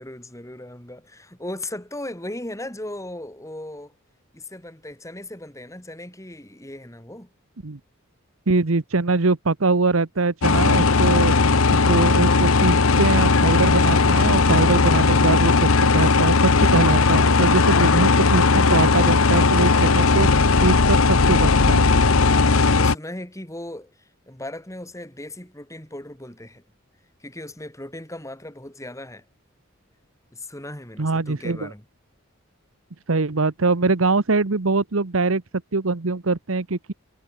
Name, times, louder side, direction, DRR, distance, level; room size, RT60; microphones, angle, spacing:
voice 1, 0.0-3.9 4.3-7.3 19.3-20.1 22.2-26.6 27.2-29.2 30.3-31.8, left 1 dB, 15° left, 5.0 m, -37 dB
voice 2, 8.5-11.3 11.7-20.3 20.6-21.9 31.0-31.7 33.1-35.4 35.7-36.9, right 3 dB, 80° right, 1.1 m, -23 dB
sound 1, 10.4-23.0, left 4 dB, 90° left, 1.1 m, -17 dB
head